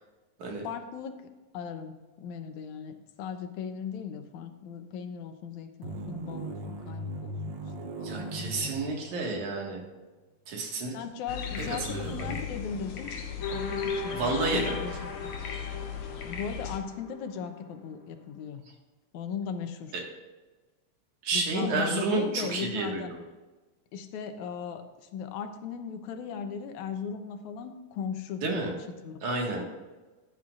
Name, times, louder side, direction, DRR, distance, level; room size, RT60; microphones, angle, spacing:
voice 1, 0.6-1.2 1.5-7.6 8.0-8.6 10.9-13.1 13.5-15.4 16.2-18.6 19.1-19.9 21.3-23.1 23.9-28.8 29.0-29.2 29.6-29.7, left 7 dB, 85° left, 7 dB, 2.3 m, -38 dB
sound 1, 5.8-9.6 9.8-9.9 11.6-12.4, right 1 dB, 65° right, 1.1 m, -39 dB
voice 2, 8.0-9.8 10.5-11.0 11.7-12.3 14.1-14.7 21.2-23.2 28.4-28.7 29.2-29.6, right 3 dB, 85° right, 0 dB, 3.3 m, -30 dB
sound 2, 11.3-16.8, left 7 dB, 65° left, 1.4 m, -37 dB
sound 3, 13.4-17.3, left 4 dB, 45° left, 0.8 m, -37 dB
14.5 x 10.0 x 2.5 m, 1.2 s
omnidirectional pair, 3.3 m